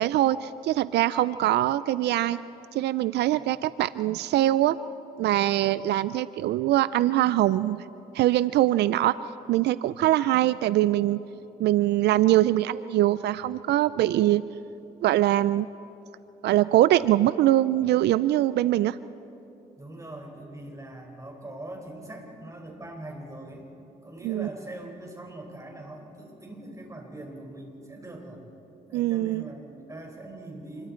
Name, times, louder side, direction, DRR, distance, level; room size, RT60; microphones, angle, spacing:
voice 1, 0.0-2.4 2.7-4.8 5.2-7.8 8.1-9.1 9.5-11.2 11.6-14.4 15.0-15.7 16.4-19.0 24.2-24.5 28.9-29.5, right 14 dB, 85° right, 16 dB, 0.4 m, -23 dB
voice 2, 19.8-23.7 24.0-28.4 28.9-30.9, right 1 dB, 20° right, 1 dB, 5.3 m, -42 dB
27.5 x 22.5 x 4.4 m, 2.9 s
cardioid pair, 70°, 17 cm